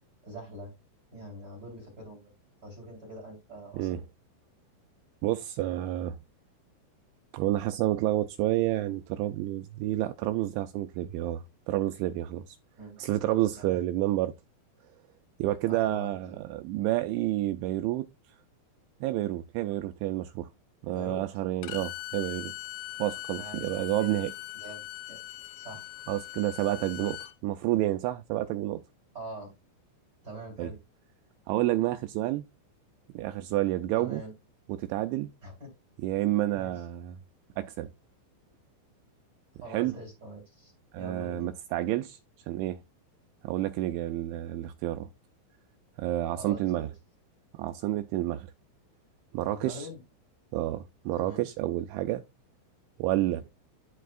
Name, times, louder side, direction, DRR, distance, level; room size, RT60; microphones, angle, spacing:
voice 1, 0.2-0.7 1.1-2.3 2.6-4.0 12.8-13.0 13.6-13.8 15.7-16.3 20.8-21.2 23.3-24.1 24.5-25.2 25.6-25.8 26.6-27.1 29.1-29.5 30.2-30.8 33.9-34.3 35.4-35.7 36.5-36.8 39.6-41.5 46.4-46.9 49.5-50.0 51.2-51.4, right 1 dB, 30° right, 2.0 m, -44 dB
voice 2, 5.2-6.2 7.3-12.6 13.0-14.4 15.4-18.1 19.0-20.5 20.8-22.5 23.0-24.3 26.1-28.8 30.6-30.7 31.5-32.4 33.1-34.2 34.7-35.3 36.0-37.2 37.6-37.9 39.7-39.9 40.9-42.2 42.5-42.8 43.4-45.1 46.0-46.9 47.5-48.5 49.3-49.9 50.5-52.2 53.0-53.4, right 15 dB, 85° right, 2.7 m, -29 dB
Bowed string instrument, 21.6-27.3, left 16 dB, 85° left, 3.1 m, -41 dB
11.5 x 4.6 x 2.5 m
omnidirectional pair, 5.7 m